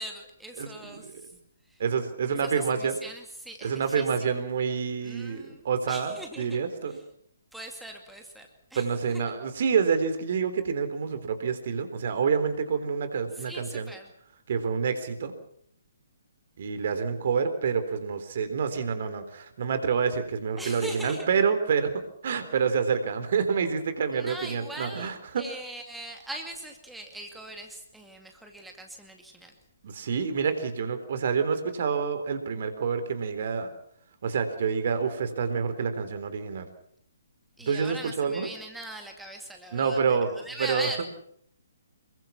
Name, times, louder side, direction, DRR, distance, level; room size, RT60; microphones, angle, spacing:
voice 1, 0.0-1.3 1.6-1.8 2.3-4.1 5.0-6.6 6.9-7.0 7.5-9.2 13.3-14.1 20.6-21.3 24.1-29.5 37.6-41.1, right 1 dB, 5° right, 2 dB, 2.3 m, -41 dB
voice 2, 1.8-3.0 3.6-6.9 8.8-13.9 14.5-15.3 16.6-25.4 29.8-33.7 34.2-36.7 37.7-38.5 39.7-40.9, right 6 dB, 45° right, 10 dB, 3.8 m, -28 dB
27.0 x 22.5 x 5.9 m, 0.66 s
figure-of-eight pair, 130°, 0 cm